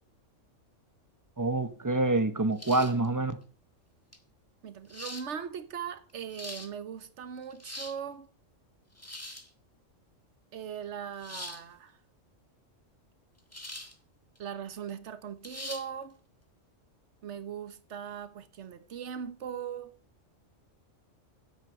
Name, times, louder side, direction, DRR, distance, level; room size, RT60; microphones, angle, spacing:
voice 1, 1.4-3.4, right 2 dB, 15° right, 0.8 m, -27 dB
sound 1, 2.6-3.1 4.1-4.2 4.9-5.3 6.1-6.7 7.4-8.0 9.0-9.5 11.2-11.6 13.5-13.9 14.3-14.4 15.4-15.9, left 1 dB, 10° left, 1.3 m, -42 dB
voice 2, 4.6-8.3 10.5-12.0 14.4-16.2 17.2-20.0, right 8 dB, 65° right, 1.4 m, -39 dB
9.6 x 8.1 x 6.8 m
omnidirectional pair, 1.3 m